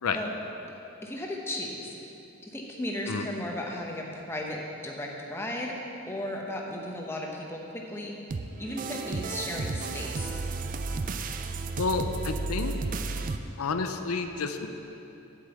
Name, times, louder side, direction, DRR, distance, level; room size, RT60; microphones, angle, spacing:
voice 1, 1.0-2.0 2.4-5.7 6.1-8.3 8.6-10.4, left 1 dB, 10° left, -1 dB, 0.8 m, -35 dB
sound 1, 8.3-13.4, right 3 dB, 40° right, 0.3 m, -33 dB
voice 2, 11.8-12.7 13.6-14.7, left 4 dB, 90° left, 7 dB, 0.5 m, -30 dB
8.1 x 5.4 x 7.8 m, 2.9 s
head